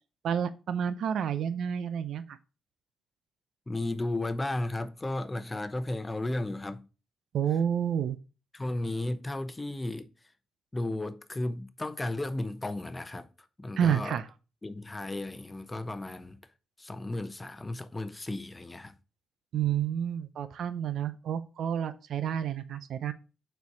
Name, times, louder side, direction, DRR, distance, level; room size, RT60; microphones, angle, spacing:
voice 1, 0.2-2.4 7.3-8.2 13.8-14.2 19.5-23.1, right 8 dB, 70° right, 0.6 m, -29 dB
voice 2, 3.7-6.9 8.5-10.1 10.7-14.2 14.6-16.4 16.8-19.0, left 2 dB, 15° left, 0.8 m, -34 dB
6.9 x 4.5 x 4.7 m
cardioid pair, 100°, 0 cm